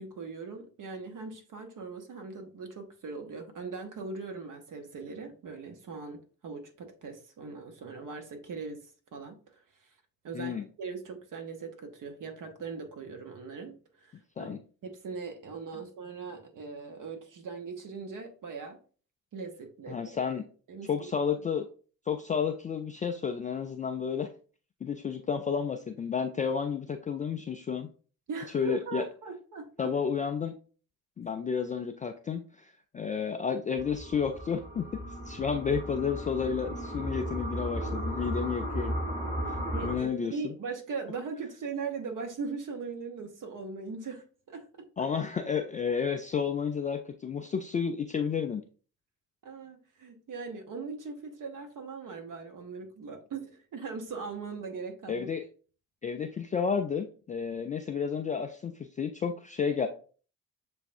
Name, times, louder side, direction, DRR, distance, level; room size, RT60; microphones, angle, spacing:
voice 1, 0.0-8.8 9.1-9.4 10.2-14.1 14.4-14.6 14.8-18.8 19.3-20.0 20.7-21.1 28.3-29.9 39.7-44.6 45.0-45.1 49.4-55.4, right 4 dB, 45° right, 5 dB, 1.1 m, -40 dB
voice 2, 10.3-10.7 14.4-14.6 19.9-20.5 20.9-21.7 22.1-24.3 24.8-27.9 28.5-29.0 29.8-30.5 31.2-35.0 35.3-39.0 39.5-39.6 39.8-40.5 45.0-48.6 55.1-55.5 56.0-59.9, left 6 dB, 20° left, 5 dB, 0.3 m, -31 dB
sound 1, 33.8-40.0, equal, 20° right, 1.7 m, -35 dB
6.8 x 2.3 x 2.6 m, 0.40 s
figure-of-eight pair, 45°, 44 cm